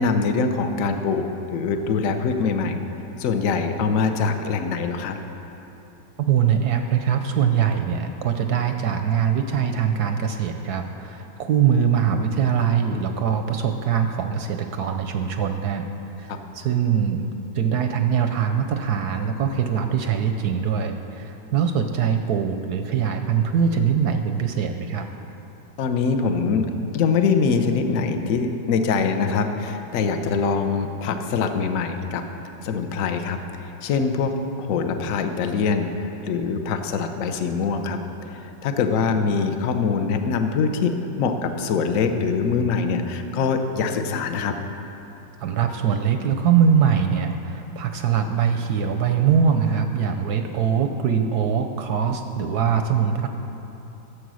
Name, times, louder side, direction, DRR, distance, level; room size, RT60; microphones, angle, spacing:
voice 1, 0.0-2.8 3.2-5.2 16.3-16.4 25.8-32.2 32.6-40.9 41.2-44.5, left 5 dB, 60° left, 7 dB, 0.9 m, -23 dB
voice 2, 6.2-15.9 16.2-17.2 17.5-25.1 45.4-53.3, right 7 dB, 70° right, 6 dB, 1.0 m, -22 dB
13.5 x 7.7 x 6.3 m, 3.0 s
omnidirectional pair, 2.1 m